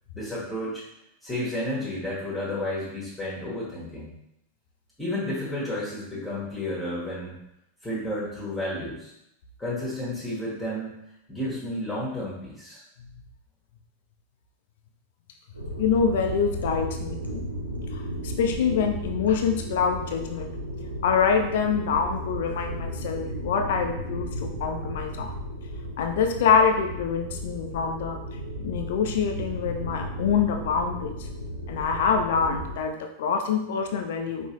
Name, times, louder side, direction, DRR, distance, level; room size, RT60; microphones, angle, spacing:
voice 1, 0.1-0.8 1.2-4.1 5.0-7.4 7.8-9.1 9.6-11.0 11.3-12.8, left 1 dB, 10° left, -7 dB, 1.4 m, -31 dB
sound 1, 15.5-32.8, right 1 dB, 90° right, 0.7 m, -34 dB
voice 2, 15.8-17.4 17.9-20.5 21.0-25.3 26.0-28.2 28.6-31.3 31.7-34.5, left 6 dB, 55° left, 4 dB, 0.5 m, -25 dB
5.4 x 3.1 x 3.0 m, 0.81 s
figure-of-eight pair, 90°, 0 cm